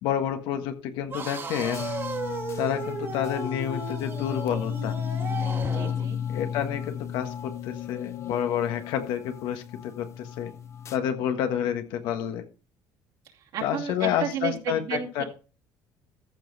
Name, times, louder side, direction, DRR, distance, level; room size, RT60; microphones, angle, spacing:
voice 1, 0.0-1.8 2.6-5.0 6.3-10.5 10.9-12.5 13.6-15.2, left 9 dB, 80° left, 7 dB, 1.5 m, -29 dB
sound 1, 1.1-6.0, right 4 dB, 30° right, 2.0 m, -35 dB
sound 2, 1.7-11.0, left 8 dB, 40° left, 0.7 m, -33 dB
voice 2, 5.7-6.2 13.5-15.2, right 8 dB, 65° right, 0 dB, 2.6 m, -32 dB
14.5 x 5.4 x 4.2 m, 0.36 s
cardioid pair, 115°, 8 cm